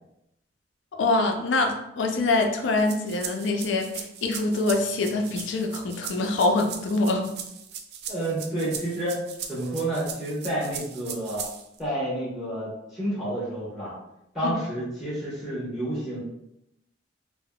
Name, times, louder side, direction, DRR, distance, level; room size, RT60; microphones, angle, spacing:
voice 1, 0.9-7.3 14.4-14.5, left 2 dB, 85° left, 4 dB, 0.4 m, -25 dB
sound 1, 2.8-11.8, right 7 dB, 60° right, 0.3 m, -38 dB
voice 2, 8.1-9.2 9.5-11.4 11.8-13.9 14.3-16.2, right 1 dB, ahead, -8 dB, 0.8 m, -29 dB
3.4 x 2.0 x 2.2 m, 0.84 s
head